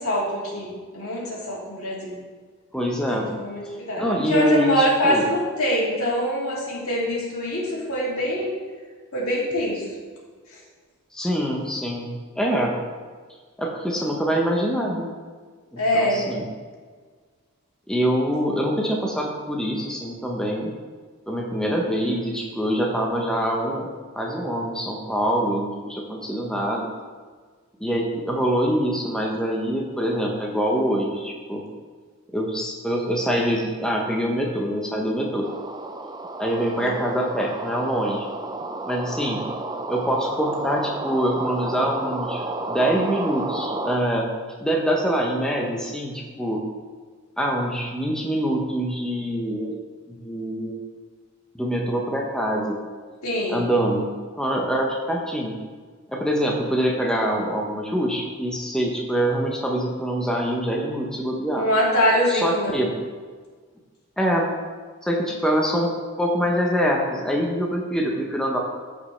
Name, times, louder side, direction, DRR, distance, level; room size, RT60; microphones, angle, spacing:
voice 1, 0.0-2.1 3.1-8.5 9.1-9.9 15.8-16.2 36.6-37.0 53.2-53.6 61.6-62.7, equal, 90° left, -5 dB, 2.8 m, -24 dB
voice 2, 2.7-3.3 3.7-5.2 11.1-12.7 13.6-15.1 15.7-16.4 17.9-20.7 21.3-23.9 24.2-26.9 27.8-31.6 32.3-35.5 36.4-38.3 38.9-39.4 39.9-44.3 44.6-46.6 47.4-49.7 50.1-50.8 51.5-52.8 53.5-54.1 54.4-55.5 56.1-61.7 62.3-62.9 64.2-64.5 65.0-65.9 66.2-68.6, equal, 5° left, -1 dB, 0.8 m, -24 dB
sound 1, 35.4-44.0, right 2 dB, 20° right, 0.4 m, -31 dB
14.0 x 5.2 x 3.3 m, 1.5 s
head